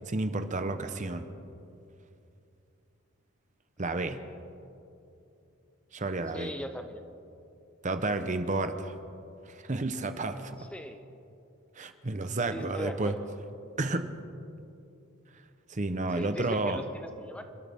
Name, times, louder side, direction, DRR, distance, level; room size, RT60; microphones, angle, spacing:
voice 1, 0.1-1.3 3.8-4.2 5.9-6.5 7.8-8.9 9.5-10.6 11.8-13.1 13.8-14.1 15.7-16.8, right 2 dB, 35° right, 9 dB, 0.8 m, -31 dB
voice 2, 6.3-7.0 10.6-11.0 12.5-13.3 16.1-17.4, equal, 5° left, 7 dB, 0.6 m, -40 dB
29.0 x 13.0 x 3.6 m, 2.7 s
head